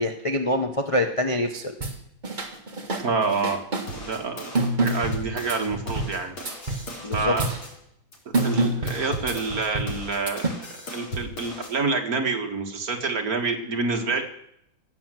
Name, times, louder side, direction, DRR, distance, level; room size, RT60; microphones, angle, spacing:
voice 1, 0.0-1.7 7.0-7.3, left 1 dB, 30° left, 3 dB, 0.5 m, -25 dB
sound 1, 1.6-2.0 2.2-3.9 4.6-6.1 6.5-6.9 7.1-7.6 8.3-9.9 10.3-10.5, right 2 dB, 25° right, 1.6 m, -27 dB
voice 2, 3.0-3.6 3.9-6.4 6.6-6.9 7.1-7.5 8.4-14.2, right 4 dB, 50° right, 3 dB, 2.0 m, -27 dB
sound 2, 3.9-7.7 8.1-11.7, equal, 90° left, 4.0 m, -37 dB
16.5 x 7.9 x 7.6 m, 0.74 s
omnidirectional pair, 2.1 m